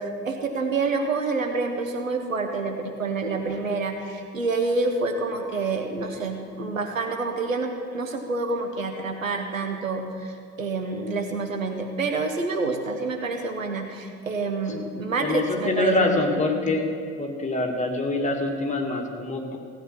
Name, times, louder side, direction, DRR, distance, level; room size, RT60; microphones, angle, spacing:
voice 1, 0.0-16.4, right 3 dB, 85° right, 4 dB, 1.0 m, -28 dB
voice 2, 15.2-16.9 17.2-19.6, left 2 dB, 20° left, 0 dB, 2.2 m, -25 dB
16.0 x 9.1 x 5.8 m, 2.1 s
figure-of-eight pair, 55°, 39 cm